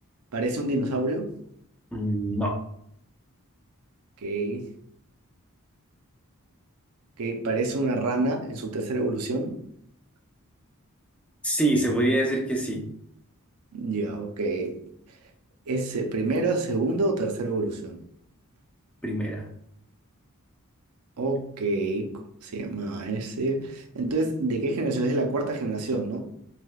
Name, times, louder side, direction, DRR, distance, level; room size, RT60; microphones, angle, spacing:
voice 1, 0.3-1.3 4.2-4.7 7.2-9.6 13.7-14.8 15.7-18.0 21.2-26.3, right 2 dB, 90° right, 4 dB, 0.5 m, -27 dB
voice 2, 1.9-2.6 11.4-12.9 19.0-19.5, right 1 dB, 5° left, 0 dB, 0.4 m, -25 dB
3.3 x 2.8 x 2.3 m, 0.72 s
head